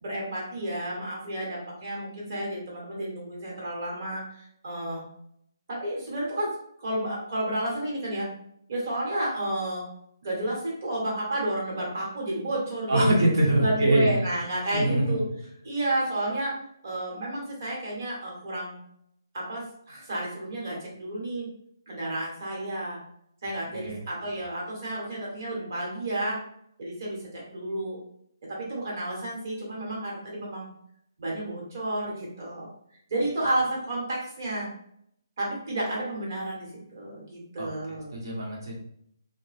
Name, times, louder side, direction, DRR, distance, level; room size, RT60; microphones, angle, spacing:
voice 1, 0.0-5.0 5.7-6.5 6.8-8.3 8.7-9.9 10.2-13.1 13.6-15.2 15.6-16.5 16.8-18.8 19.3-21.5 21.9-23.0 23.4-26.4 26.8-27.2 27.5-28.0 28.5-30.7 31.2-32.7 33.1-34.7 35.4-38.1, right 1 dB, 40° right, -3 dB, 1.0 m, -31 dB
voice 2, 12.9-14.1 14.7-15.2 23.7-24.0 37.6-38.8, right 1 dB, 75° right, -3 dB, 1.0 m, -24 dB
2.7 x 2.2 x 3.2 m, 0.70 s
hypercardioid pair, 175°, 2 cm